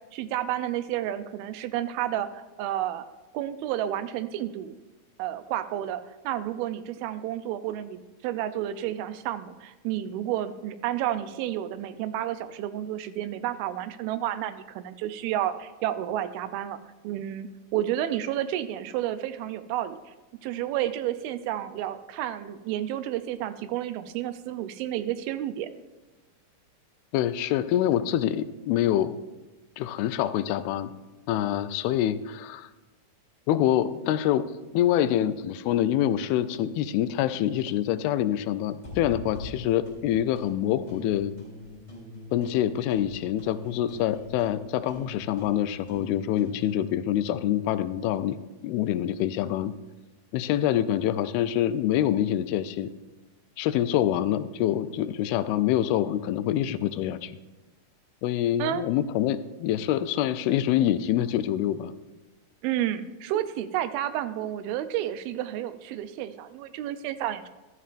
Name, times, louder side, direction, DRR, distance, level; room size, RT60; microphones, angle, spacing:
voice 1, 0.0-3.1 3.3-4.8 5.2-16.8 17.0-20.1 20.4-25.7 58.6-58.8 62.6-67.5, right 12 dB, 85° right, 11 dB, 2.4 m, -31 dB
voice 2, 27.1-29.2 29.8-30.9 31.3-32.7 33.5-34.5 34.7-41.3 42.3-48.4 48.6-49.7 50.3-52.9 53.6-57.4 58.2-61.9, left 11 dB, 85° left, 12 dB, 2.4 m, -26 dB
sound 1, 38.8-40.5 40.9-42.6 42.9-46.6, left 2 dB, 10° left, 2.8 m, -43 dB
14.0 x 12.5 x 2.5 m, 1.2 s
omnidirectional pair, 4.3 m